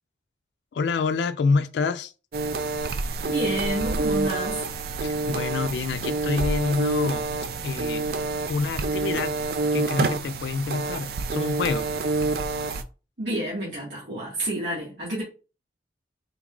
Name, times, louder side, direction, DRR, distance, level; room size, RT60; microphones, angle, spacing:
voice 1, 0.7-2.1 5.0-7.2 7.6-8.1 8.5-9.3 9.7-11.9, left 4 dB, 80° left, 0.3 m, -27 dB
sound 1, 2.3-12.8, right 3 dB, 55° right, 0.4 m, -27 dB
voice 2, 3.3-4.6 13.2-15.2, right 1 dB, 80° right, 1.5 m, -29 dB
3.8 x 2.3 x 3.7 m
head